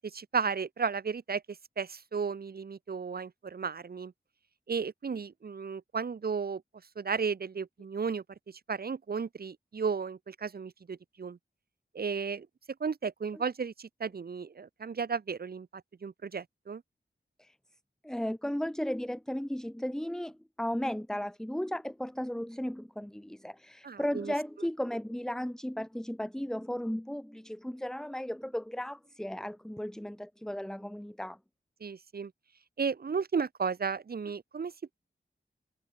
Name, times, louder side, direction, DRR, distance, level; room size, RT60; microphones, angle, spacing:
voice 1, 0.0-1.4 1.8-4.1 4.7-6.6 7.0-11.4 11.9-12.5 12.8-16.8 23.8-24.3 31.8-32.3 32.8-34.7, right 5 dB, 55° right, 0.7 m, -34 dB
voice 2, 18.0-31.4, equal, 5° left, 0.6 m, -35 dB
wide cardioid pair, 85°, 19 cm